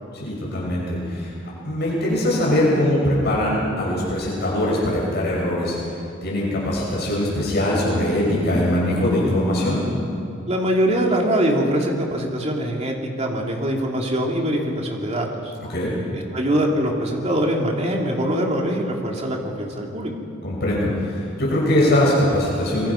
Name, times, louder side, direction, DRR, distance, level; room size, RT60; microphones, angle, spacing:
voice 1, 0.1-1.3 1.6-5.8 6.2-9.8 15.7-15.9 20.4-22.9, left 1 dB, 55° left, -5 dB, 7.6 m, -21 dB
voice 2, 10.5-15.5 16.1-20.1, right 1 dB, 35° right, 0 dB, 3.0 m, -23 dB
25.0 x 23.5 x 5.9 m, 2.5 s
head